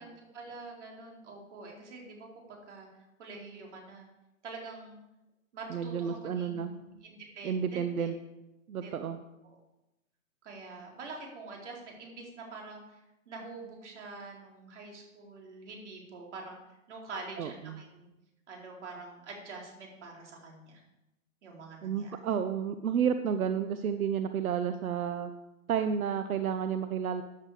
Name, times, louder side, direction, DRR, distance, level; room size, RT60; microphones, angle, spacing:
voice 1, 0.0-2.9 3.2-4.1 4.4-5.0 5.5-8.1 8.7-9.0 9.4-9.6 10.4-13.0 13.3-16.6 16.9-18.1 18.5-20.8 21.4-22.2, right 3 dB, 55° right, -1 dB, 4.3 m, -46 dB
voice 2, 5.7-6.7 7.4-8.1 8.7-9.2 17.4-17.8 21.8-25.3 25.7-27.2, right 7 dB, 85° right, 9 dB, 1.0 m, -31 dB
14.5 x 9.6 x 5.0 m, 0.96 s
hypercardioid pair, 180°, 41 cm